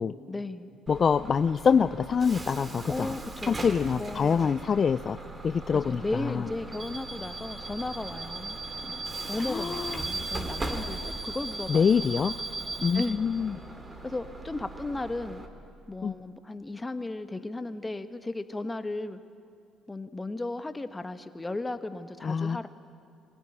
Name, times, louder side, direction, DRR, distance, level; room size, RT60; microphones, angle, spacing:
voice 1, 0.3-0.7 2.9-3.6 4.0-4.5 5.7-8.6 8.8-12.1 12.9-13.3 14.0-15.4 15.9-19.2 19.9-22.7, left 2 dB, 20° left, 10 dB, 1.3 m, -35 dB
voice 2, 0.9-3.1 3.5-5.2 5.4-6.5 9.4-10.0 11.7-12.3 12.8-13.6 16.0-16.2 22.2-22.6, left 6 dB, 45° left, 13 dB, 0.4 m, -25 dB
Bus / Alarm, 0.9-15.5, right 2 dB, 30° right, 2.7 m, -38 dB
22.0 x 16.5 x 10.0 m, 2.4 s
supercardioid pair, 65°, 0 cm